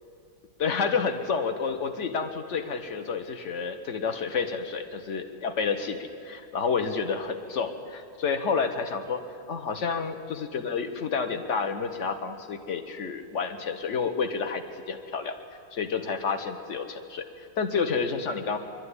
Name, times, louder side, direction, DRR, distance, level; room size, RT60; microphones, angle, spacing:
voice 1, 0.6-6.0 6.2-9.2 9.5-15.3 15.7-18.6, left 5 dB, 40° left, 7 dB, 1.4 m, -29 dB
23.0 x 12.5 x 9.9 m, 2.4 s
omnidirectional pair, 2.1 m